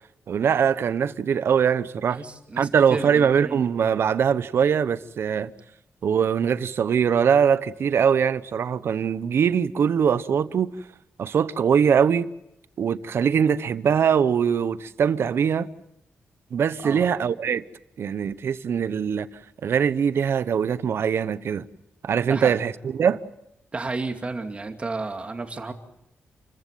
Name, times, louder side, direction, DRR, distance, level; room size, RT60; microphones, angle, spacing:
voice 1, 0.3-2.2 2.6-5.5 6.0-10.7 11.2-12.3 12.8-15.7 16.5-17.6 18.0-19.3 19.6-21.7 22.0-23.2, right 7 dB, 65° right, 0.9 m, -22 dB
voice 2, 2.1-3.6 16.8-17.1 22.2-22.5 23.7-25.7, right 3 dB, 25° right, 2.4 m, -32 dB
29.0 x 15.0 x 9.3 m
wide cardioid pair, 135°, 4 cm